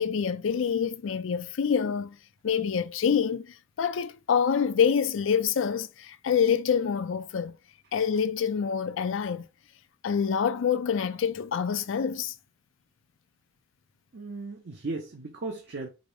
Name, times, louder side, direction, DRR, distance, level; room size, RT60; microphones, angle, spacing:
voice 1, 0.0-2.1 2.4-7.5 7.9-9.4 10.0-12.3, left 7 dB, 70° left, 0.4 m, -26 dB
voice 2, 14.1-15.9, right 3 dB, 60° right, 0.7 m, -36 dB
4.9 x 2.0 x 4.7 m
head